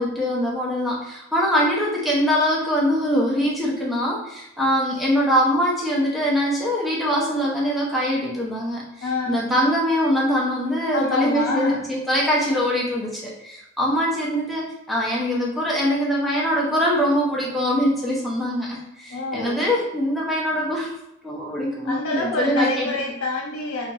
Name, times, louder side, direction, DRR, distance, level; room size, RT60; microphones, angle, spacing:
voice 1, 0.0-20.9 21.2-22.9, equal, ahead, -5 dB, 0.6 m, -23 dB
voice 2, 9.0-9.4 10.9-11.8 19.1-19.7 21.8-23.9, left 2 dB, 85° left, 0 dB, 0.6 m, -27 dB
2.8 x 2.6 x 2.3 m, 0.88 s
head